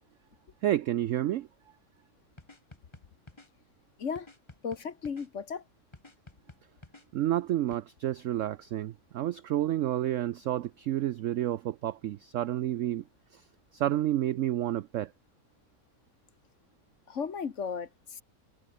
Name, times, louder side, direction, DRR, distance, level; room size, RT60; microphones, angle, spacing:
voice 1, 0.6-1.5 7.1-13.0 13.3-13.4 13.7-15.1, right 13 dB, 75° right, 0.7 m, -30 dB
sound 1, 2.4-3.5 4.2-5.3 5.9-7.1 7.7-7.8, left 2 dB, 15° left, 1.6 m, -52 dB
voice 2, 4.6-5.6 17.1-18.2, left 6 dB, 45° left, 1.5 m, -35 dB
omnidirectional pair, 1.9 m